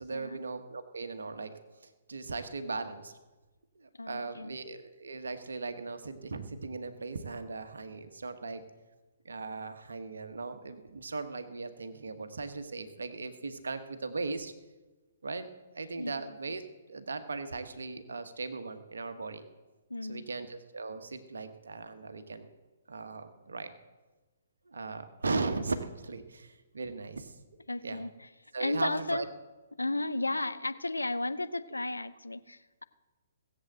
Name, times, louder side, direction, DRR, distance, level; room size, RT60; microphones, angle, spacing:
voice 1, 0.0-1.6 2.1-3.1 3.7-8.6 9.2-14.5 15.2-16.6 16.9-19.4 20.1-22.5 22.9-23.7 24.7-27.4 27.8-28.0 28.5-29.3, right 3 dB, 70° right, 9 dB, 1.2 m, -38 dB
voice 2, 4.0-4.5 16.0-16.1 19.9-20.3 27.7-28.3 28.6-29.3 29.8-32.8, left 2 dB, 85° left, 12 dB, 0.7 m, -34 dB
18.0 x 7.9 x 7.9 m, 1.2 s
figure-of-eight pair, 125°, 0 cm